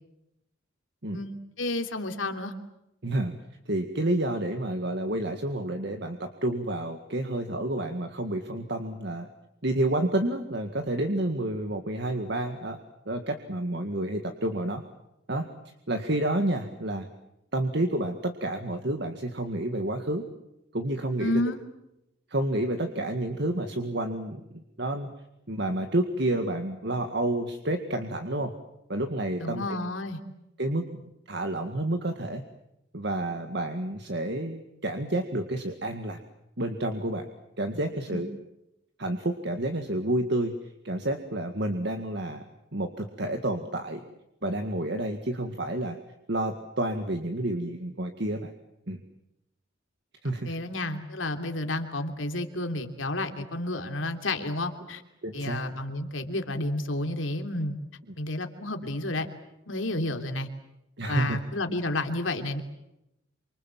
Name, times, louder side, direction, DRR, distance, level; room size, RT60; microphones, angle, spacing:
voice 1, 1.1-2.5 21.2-21.6 29.4-30.2 38.1-38.2 50.4-55.0 55.3-57.7 58.2-59.3 59.7-60.5 61.1-62.6, left 2 dB, 80° left, 6 dB, 3.2 m, -31 dB
voice 2, 3.0-3.3 3.7-9.3 9.6-12.8 13.1-14.8 15.3-15.5 15.9-17.1 17.5-20.3 20.7-21.4 22.3-24.4 24.8-25.1 25.5-28.5 28.9-29.8 30.6-30.9 31.3-32.4 32.9-36.2 36.6-37.3 37.6-38.3 39.0-42.4 42.7-44.0 44.4-46.0 46.3-48.5 48.9-49.0 50.2-50.5 55.2-55.6 61.0-61.4, right 1 dB, 60° right, 6 dB, 2.0 m, -29 dB
28.5 x 26.0 x 7.6 m, 0.88 s
head